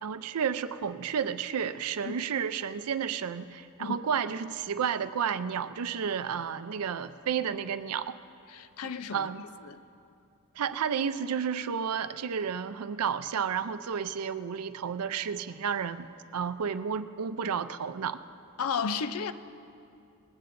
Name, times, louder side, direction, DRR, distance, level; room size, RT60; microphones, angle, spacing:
voice 1, 0.0-8.2 9.1-9.4 10.6-18.2, right 7 dB, 85° right, 12 dB, 0.5 m, -31 dB
voice 2, 8.5-9.3 9.7-9.8 18.6-19.3, left 6 dB, 70° left, 12 dB, 0.5 m, -33 dB
20.0 x 15.5 x 2.6 m, 2.6 s
head